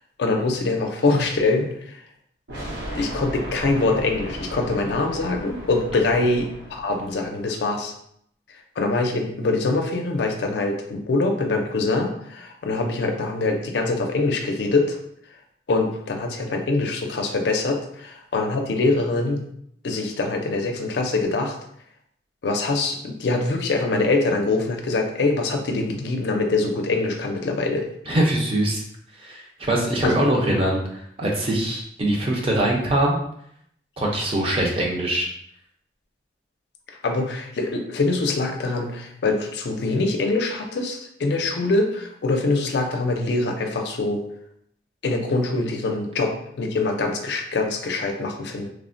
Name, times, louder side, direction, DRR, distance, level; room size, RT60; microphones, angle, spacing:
voice 1, 0.2-2.0 2.9-7.9 8.8-15.0 15.7-19.4 19.8-21.6 22.4-27.9 30.0-30.2 37.0-44.2 45.0-48.7, left 3 dB, 70° left, 3 dB, 0.4 m, -24 dB
sound 1, 2.5-7.4, equal, 80° right, 0.9 m, -35 dB
voice 2, 28.1-28.8 29.2-33.2 34.0-35.3, right 1 dB, 30° right, -1 dB, 0.5 m, -22 dB
3.2 x 2.1 x 2.5 m, 0.70 s
head